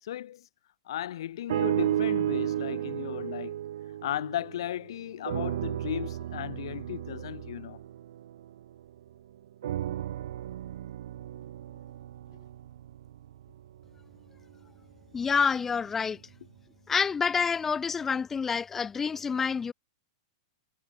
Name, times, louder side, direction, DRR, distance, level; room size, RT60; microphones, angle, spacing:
voice 1, 0.0-0.5 0.9-3.6 4.0-7.8, left 12 dB, 60° left, 3.5 m, -36 dB
sound 1, 1.5-4.8 5.2-9.0 9.6-13.8 14.5-14.6, right 11 dB, 60° right, 2.6 m, -33 dB
voice 2, 15.1-16.2 16.9-19.7, left 6 dB, 10° left, 5.4 m, -28 dB
supercardioid pair, 175°, 3 cm